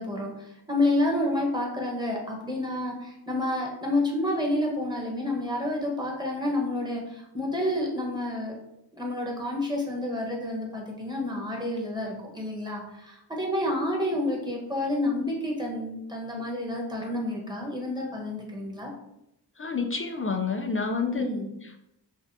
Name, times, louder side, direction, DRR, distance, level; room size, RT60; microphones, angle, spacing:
voice 1, 0.0-8.5 9.0-18.9 21.1-21.5, left 1 dB, 10° right, -2 dB, 1.2 m, -29 dB
voice 2, 19.6-21.3 21.6-21.8, left 4 dB, 30° left, 3 dB, 0.4 m, -29 dB
5.8 x 2.4 x 2.7 m, 0.84 s
wide cardioid pair, 85°, 43 cm